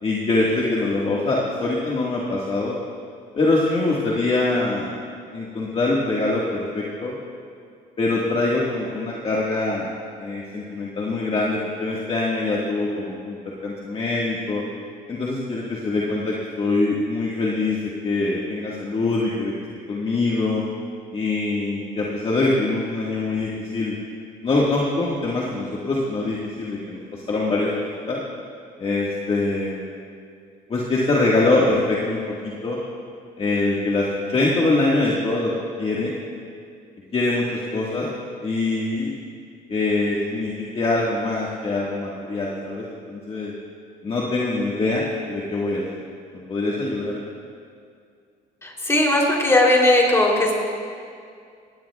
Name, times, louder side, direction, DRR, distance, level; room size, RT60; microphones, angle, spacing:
voice 1, 0.0-2.8 3.3-4.9 5.3-7.2 8.0-9.9 10.2-14.6 15.1-19.5 19.9-20.6 21.1-24.0 24.4-27.7 28.1-28.2 28.8-29.8 30.7-32.8 33.4-35.5 35.8-36.2 37.1-38.1 38.4-39.1 39.7-43.5 44.0-45.8 46.3-47.2, left 2 dB, 35° left, -5 dB, 1.7 m, -23 dB
voice 2, 48.6-50.5, left 1 dB, 15° left, -2 dB, 3.2 m, -18 dB
19.0 x 16.5 x 2.4 m, 2.3 s
cardioid pair, 110°, 17 cm